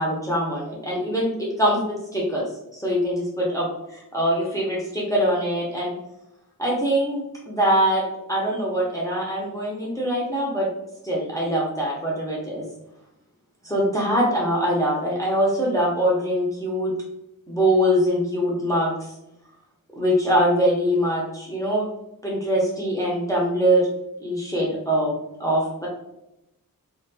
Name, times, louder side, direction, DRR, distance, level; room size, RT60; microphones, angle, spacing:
voice 1, 0.0-2.5 2.7-5.9 6.6-10.7 11.0-12.6 13.6-16.9 17.5-18.9 19.9-21.8 22.2-23.9 24.2-25.1 25.4-25.9, equal, 10° left, -4 dB, 0.7 m, -23 dB
2.6 x 2.4 x 2.2 m, 0.85 s
wide cardioid pair, 50°, 36 cm